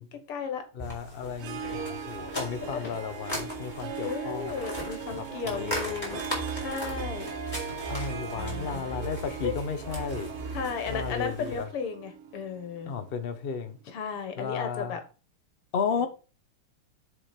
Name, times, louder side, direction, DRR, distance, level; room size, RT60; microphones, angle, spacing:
voice 1, 0.1-0.6 1.5-2.0 2.7-3.0 4.0-6.3 6.5-7.3 8.3-9.1 9.4-9.6 10.5-12.9 13.9-15.0 16.0-16.1, left 6 dB, 85° left, 2.3 m, -35 dB
voice 2, 0.7-4.5 5.2-6.0 7.9-10.3 10.9-11.7 12.9-13.8 14.4-14.9 15.7-16.1, left 6 dB, 50° left, 0.6 m, -34 dB
sound 1, 0.8-11.7, equal, 10° left, 3.9 m, -39 dB
Harp, 1.3-13.2, right 6 dB, 85° right, 1.9 m, -40 dB
sound 2, 6.1-11.3, right 5 dB, 35° right, 0.5 m, -39 dB
7.4 x 5.1 x 5.1 m
omnidirectional pair, 2.4 m